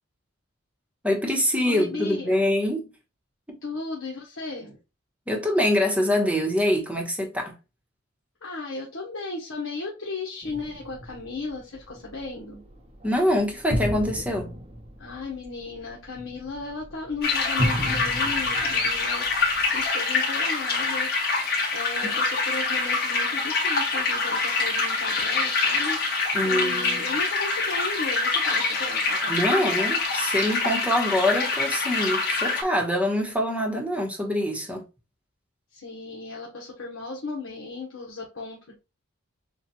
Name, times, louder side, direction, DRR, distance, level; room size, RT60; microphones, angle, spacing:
voice 1, 1.0-2.9 5.3-7.5 13.0-14.5 26.3-27.0 29.3-34.9, left 1 dB, 5° right, 1.0 m, -24 dB
voice 2, 1.6-2.5 3.6-4.8 8.4-12.6 15.0-19.3 19.7-21.1 21.7-29.8 35.7-38.8, left 3 dB, 70° left, 1.1 m, -35 dB
sound 1, 10.4-19.9, equal, 30° right, 0.7 m, -34 dB
sound 2, 17.2-32.6, left 3 dB, 45° left, 1.4 m, -25 dB
7.0 x 2.4 x 2.9 m
head